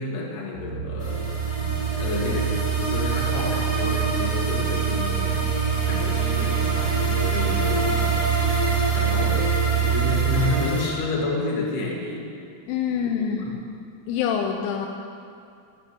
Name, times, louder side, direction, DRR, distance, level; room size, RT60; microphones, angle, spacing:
voice 1, 0.0-1.3 1.6-5.4 5.8-8.2 8.9-12.3 12.9-13.6, left 3 dB, 60° left, -2 dB, 3.7 m, -30 dB
sound 1, 0.5-10.5, right 9 dB, 30° right, 2.6 m, -25 dB
sound 2, 1.0-10.9, equal, 15° right, 1.1 m, -29 dB
voice 2, 12.7-13.6 14.1-14.9, left 7 dB, 85° left, 2 dB, 3.0 m, -26 dB
15.5 x 10.5 x 6.7 m, 2.5 s
omnidirectional pair, 5.9 m